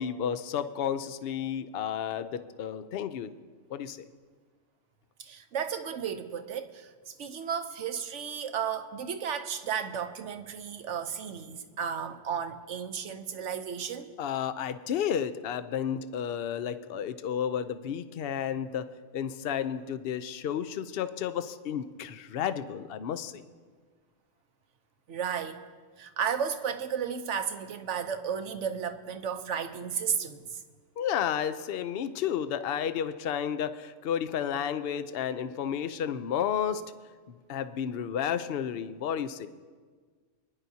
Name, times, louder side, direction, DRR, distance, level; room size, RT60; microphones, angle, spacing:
voice 1, 0.0-3.3 3.7-4.1 14.2-18.9 19.1-23.4 31.0-36.8 37.3-39.5, left 8 dB, 60° left, 11 dB, 0.8 m, -32 dB
voice 2, 5.2-14.1 25.1-25.6 26.0-30.6, right 7 dB, 75° right, 9 dB, 1.1 m, -33 dB
26.5 x 10.5 x 2.8 m, 1.5 s
omnidirectional pair, 1.3 m